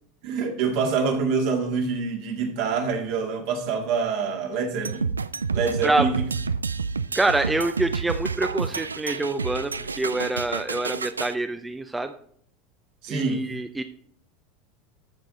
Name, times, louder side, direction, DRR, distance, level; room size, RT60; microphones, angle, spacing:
voice 1, 0.2-5.1 5.5-6.3 13.0-13.6, right 5 dB, 60° right, 3 dB, 2.1 m, -26 dB
sound 1, 4.8-11.3, right 5 dB, 85° right, 0.3 m, -29 dB
voice 2, 7.1-12.1 13.1-13.8, right 2 dB, 10° right, 9 dB, 0.6 m, -26 dB
14.0 x 6.2 x 3.8 m, 0.65 s
figure-of-eight pair, 80°, 0 cm